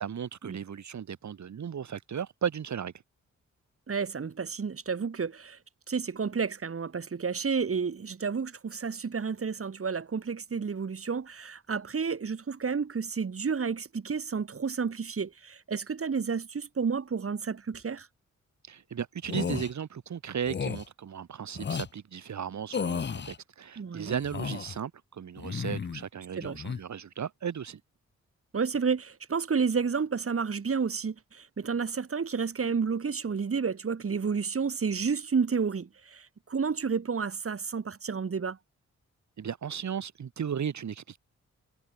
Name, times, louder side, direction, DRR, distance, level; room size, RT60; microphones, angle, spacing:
voice 1, 0.0-2.9 18.7-27.8 39.4-41.2, right 8 dB, 75° right, 3.3 m, -35 dB
voice 2, 3.9-5.6 5.9-18.1 23.8-24.2 26.4-26.6 28.5-38.6, right 5 dB, 50° right, 3.1 m, -31 dB
sound 1, 19.2-19.7 20.4-20.8 21.5-21.9 22.7-23.4 24.1-24.8 25.4-26.0 26.4-26.8, left 6 dB, 40° left, 0.8 m, -33 dB
cardioid pair, 75°, 29 cm